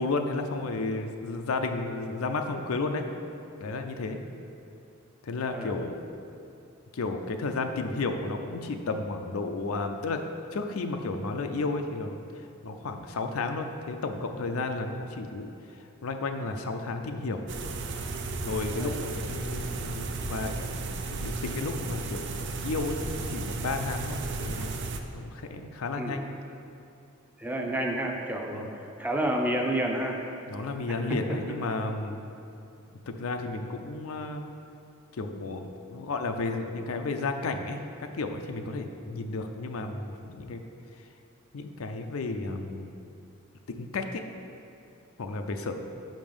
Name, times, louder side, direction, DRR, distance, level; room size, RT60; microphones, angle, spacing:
voice 1, 0.0-3.0 3.6-4.2 5.2-6.2 6.9-10.2 10.5-12.2 12.6-15.5 16.0-17.4 18.4-24.7 25.1-26.3 28.5-28.7 30.5-32.2 33.1-34.4 35.2-40.6 41.5-42.9 43.7-44.2 45.2-45.7, left 3 dB, 85° left, 6 dB, 0.5 m, -32 dB
sound 1, 17.5-25.0, right 3 dB, 60° right, 0.5 m, -34 dB
voice 2, 27.4-30.2 31.1-31.2, right 1 dB, 10° right, 1 dB, 0.5 m, -29 dB
5.8 x 5.2 x 5.3 m, 2.6 s
head